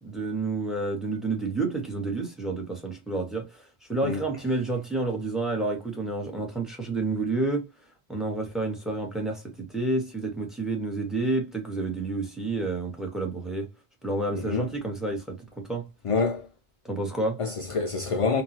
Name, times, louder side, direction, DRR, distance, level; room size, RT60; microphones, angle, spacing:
voice 1, 0.0-7.7 8.1-13.7 14.0-15.9 16.8-17.4, right 2 dB, ahead, 1.5 m, -29 dB
voice 2, 14.3-14.7 16.0-16.5 17.4-18.4, left 4 dB, 55° left, 0.3 m, -27 dB
3.8 x 2.8 x 2.8 m
omnidirectional pair, 1.1 m